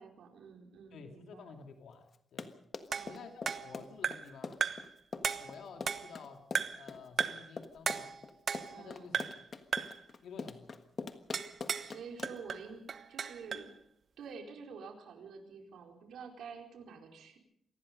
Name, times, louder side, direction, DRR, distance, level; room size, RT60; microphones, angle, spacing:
voice 1, 0.0-1.5 2.9-3.2 8.7-9.1 11.8-13.7 14.2-17.4, right 5 dB, 85° right, 3 dB, 4.5 m, -49 dB
voice 2, 0.9-2.5 3.1-4.6 5.4-6.4 6.7-8.2 8.6-9.2 10.2-10.7, left 5 dB, 75° left, 4 dB, 2.6 m, -51 dB
Run, 2.1-12.6, left 4 dB, 35° left, 1.5 m, -43 dB
sound 1, 2.9-4.4 4.6-4.9 5.2-6.2 6.5-6.9 7.2-7.5 7.9-8.9 9.1-9.5 9.7-10.0 11.3-11.9 12.2-13.7, right 6 dB, 45° right, 1.2 m, -36 dB
27.0 x 19.5 x 5.3 m, 0.74 s
wide cardioid pair, 155°, 0 cm